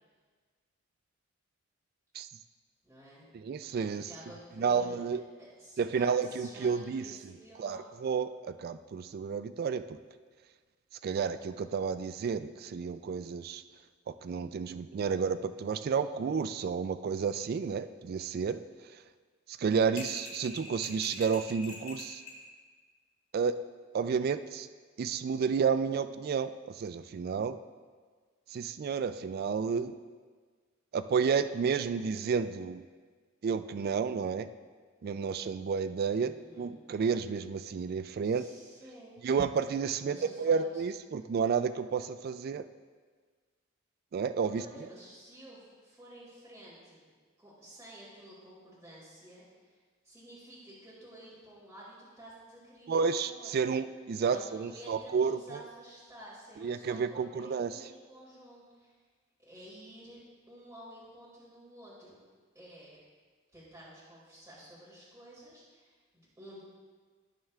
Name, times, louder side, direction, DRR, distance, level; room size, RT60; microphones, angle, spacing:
voice 1, 2.8-3.3 3.9-5.0 5.4-7.9 36.3-36.7 38.2-39.1 40.0-40.8 44.5-47.1 47.4-49.8 50.0-53.8 54.2-59.0 59.4-62.2 62.5-63.0 63.5-66.6, right 1 dB, 15° right, -9 dB, 2.4 m, -51 dB
voice 2, 3.3-4.1 4.6-5.2 5.8-7.0 7.6-9.8 11.0-13.6 14.2-18.6 19.5-22.2 23.3-23.5 23.9-24.7 25.0-27.6 28.5-30.0 30.9-32.8 33.4-34.5 35.0-38.4 39.2-42.6 44.1-44.6 52.9-55.4 56.6-57.7, right 6 dB, 50° right, 12 dB, 0.3 m, -31 dB
sound 1, 20.0-22.4, left 3 dB, 75° left, 2.1 m, -44 dB
17.5 x 6.4 x 2.4 m, 1.5 s
head